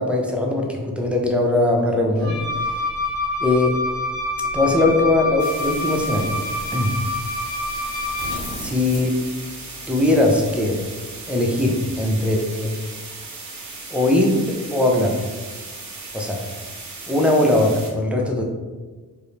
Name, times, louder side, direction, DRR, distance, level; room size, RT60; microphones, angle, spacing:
voice 1, 0.0-2.4 3.4-3.7 4.5-6.3 6.7-6.9 8.6-9.2 9.9-10.8 11.3-12.7 13.9-15.2 16.1-16.4 17.1-18.4, left 2 dB, 5° right, -1 dB, 0.4 m, -20 dB
Wind instrument woodwind instrument, 2.2-8.5, left 2 dB, 45° left, 0.8 m, -27 dB
sound 1, 5.4-17.9, right 3 dB, 50° right, 0.7 m, -37 dB
sound 2, 7.7-10.6, equal, 80° left, 1.1 m, -38 dB
2.5 x 2.1 x 3.0 m, 1.3 s
cardioid pair, 60°, 39 cm